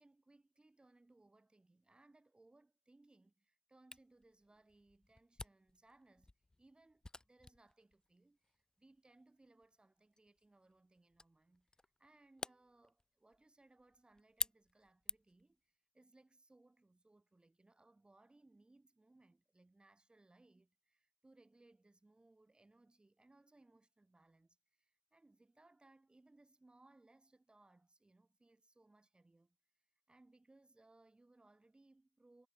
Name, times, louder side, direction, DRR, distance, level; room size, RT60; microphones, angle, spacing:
voice 1, 0.0-6.3 6.6-11.7 12.0-29.6 30.1-32.5, right 2 dB, 15° right, 3.1 m, -68 dB
Camera, 3.9-15.5, left 2 dB, 10° left, 0.8 m, -50 dB
hypercardioid pair, 65°, 6 cm